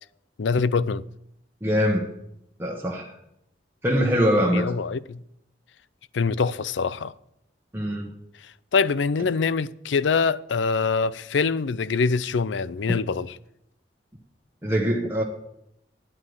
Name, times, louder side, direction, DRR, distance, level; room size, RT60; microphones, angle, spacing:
voice 1, 0.4-1.0 4.5-5.2 6.1-7.1 8.7-13.4, left 5 dB, 90° left, 0.5 m, -24 dB
voice 2, 1.6-2.1 2.6-3.1 3.8-4.7 7.7-8.1 12.9-13.0 14.6-15.2, equal, 15° right, 1.3 m, -23 dB
9.4 x 8.6 x 7.9 m
head